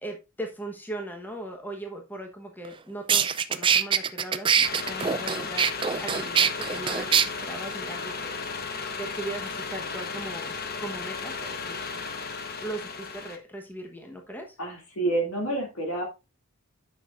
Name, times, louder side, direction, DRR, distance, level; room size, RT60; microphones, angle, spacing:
voice 1, 0.0-3.2 3.5-5.7 6.0-8.4 9.0-11.8 12.6-14.6, right 1 dB, 10° left, 2 dB, 1.1 m, -38 dB
sound 1, 2.7-2.8 3.1-7.3, right 7 dB, 25° right, 0.4 m, -23 dB
sound 2, 4.6-13.4, left 4 dB, 45° left, 1.0 m, -35 dB
voice 2, 14.6-16.0, right 2 dB, 75° left, 0 dB, 2.4 m, -28 dB
8.8 x 6.3 x 2.5 m, 0.26 s
head